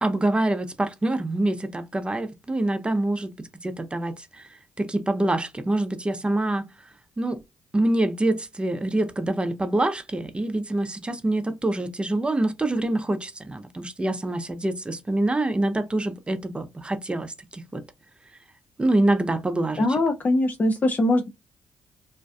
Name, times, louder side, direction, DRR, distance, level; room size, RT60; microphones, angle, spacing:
voice 1, 0.0-4.5 4.8-6.7 7.2-7.4 7.7-17.8 18.8-20.0, right 1 dB, 20° right, 0.5 m, -25 dB
voice 2, 19.8-21.3, left 1 dB, 35° left, 0.4 m, -22 dB
2.5 x 2.2 x 2.3 m
hypercardioid pair, 45°, 5 cm